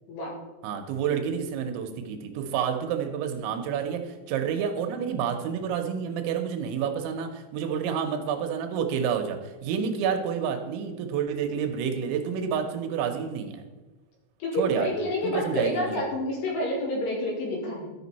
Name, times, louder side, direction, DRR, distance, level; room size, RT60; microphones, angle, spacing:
voice 1, 0.6-13.6 14.5-16.0, right 7 dB, 80° right, 6 dB, 3.0 m, -29 dB
voice 2, 14.4-17.9, left 1 dB, 70° left, -2 dB, 3.7 m, -28 dB
13.0 x 5.3 x 4.1 m, 1.1 s
omnidirectional pair, 5.4 m